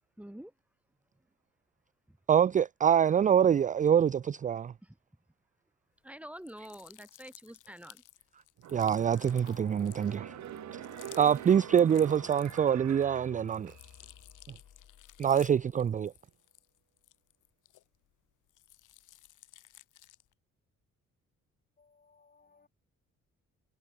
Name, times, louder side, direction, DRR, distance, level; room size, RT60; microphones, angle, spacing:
voice 1, 0.2-0.5 2.1-2.2 4.8-5.0 6.0-8.0, equal, 5° right, 2.8 m, -47 dB
voice 2, 2.3-4.7 8.7-10.3 11.2-13.7 15.2-16.1, right 8 dB, 25° right, 0.4 m, -25 dB
sound 1, 6.4-12.9 13.2-18.1 18.5-20.3, left 14 dB, 85° left, 7.8 m, -56 dB
sound 2, 8.6-14.1 14.5-14.6, right 13 dB, 70° right, 1.0 m, -45 dB
sound 3, 9.5-16.1, left 10 dB, 65° left, 5.6 m, -56 dB
voice 3, 21.8-22.7, left 4 dB, 30° left, 5.1 m, -64 dB
cardioid pair, 90°, 30 cm